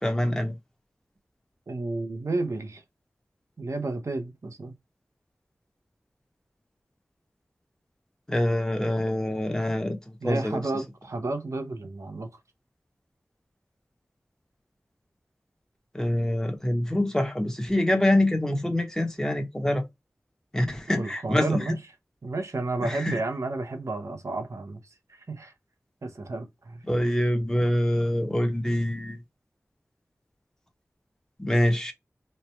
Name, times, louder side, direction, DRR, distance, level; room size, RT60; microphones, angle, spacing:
voice 1, 0.0-0.5 8.3-10.6 15.9-19.8 20.5-21.7 22.8-23.2 26.9-29.2 31.4-31.9, left 1 dB, 10° left, 1.0 m, -25 dB
voice 2, 1.7-2.8 3.6-4.7 10.2-12.3 20.9-21.8 22.2-24.8 25.1-25.5 26.0-26.8, right 2 dB, 70° right, 0.8 m, -31 dB
3.2 x 2.2 x 4.3 m
wide cardioid pair, 40°, 5 cm